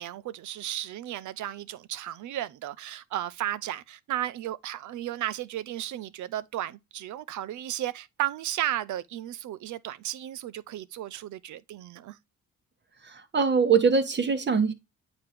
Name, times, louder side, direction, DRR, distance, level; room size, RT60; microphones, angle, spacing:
voice 1, 0.0-12.2, right 12 dB, 75° right, 0.7 m, -34 dB
voice 2, 13.0-14.7, right 5 dB, 35° right, 1.5 m, -23 dB
8.8 x 3.0 x 5.1 m
cardioid pair, 90°, 30 cm